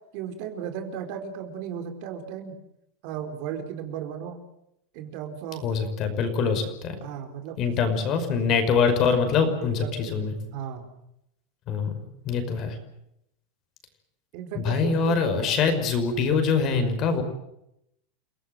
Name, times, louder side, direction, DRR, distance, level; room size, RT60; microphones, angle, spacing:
voice 1, 0.1-2.6 3.0-4.4 4.9-5.7 7.0-7.9 9.7-10.9 14.3-15.6, right 8 dB, 50° right, 6 dB, 4.5 m, -36 dB
voice 2, 5.6-7.0 7.6-10.4 11.7-11.9 12.3-12.8 14.6-17.2, left 5 dB, 35° left, 8 dB, 5.3 m, -24 dB
29.5 x 18.5 x 7.9 m, 0.81 s
supercardioid pair, 160°, 0 cm